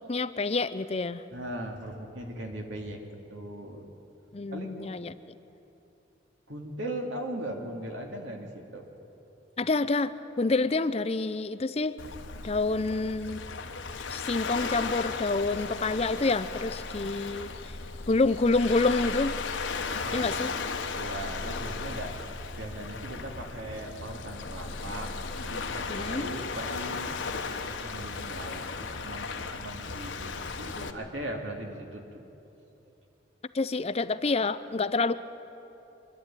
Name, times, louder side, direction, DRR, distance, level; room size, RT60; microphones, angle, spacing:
voice 1, 0.0-1.2 4.3-5.4 9.6-10.1 10.4-12.0 12.4-13.4 14.1-17.7 18.1-19.4 20.1-20.5 25.9-26.3 33.5-35.1, left 3 dB, 35° left, 13 dB, 0.5 m, -27 dB
voice 2, 1.3-3.0 3.3-3.8 4.5-4.9 6.5-8.8 19.8-20.3 20.9-22.1 22.6-25.1 25.4-27.1 27.6-32.2 32.6-32.7, right 1 dB, 90° right, 2 dB, 2.5 m, -39 dB
Waves surf, 12.0-30.9, left 4 dB, 90° left, 1.1 m, -36 dB
24.5 x 11.5 x 9.0 m, 2.9 s
head